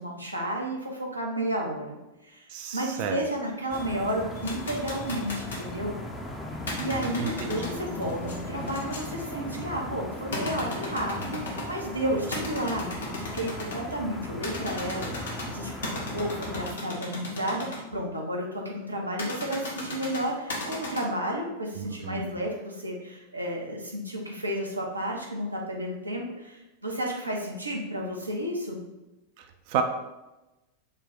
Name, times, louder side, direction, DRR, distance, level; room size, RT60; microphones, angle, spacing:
voice 1, 0.0-5.9 6.8-8.2 8.5-28.8, right 1 dB, 85° right, -1 dB, 0.7 m, -32 dB
voice 2, 2.5-3.2 7.2-7.8 21.8-22.4 29.4-29.8, right 7 dB, 45° right, 5 dB, 0.4 m, -32 dB
sound 1, 3.7-5.7 6.6-11.8 12.3-13.8 14.4-17.8 19.2-21.0, left 2 dB, 70° left, 0.9 m, -37 dB
sound 2, 3.7-16.7, left 1 dB, 10° left, 0.5 m, -38 dB
3.2 x 2.2 x 3.9 m, 1.0 s
figure-of-eight pair, 90°, 0 cm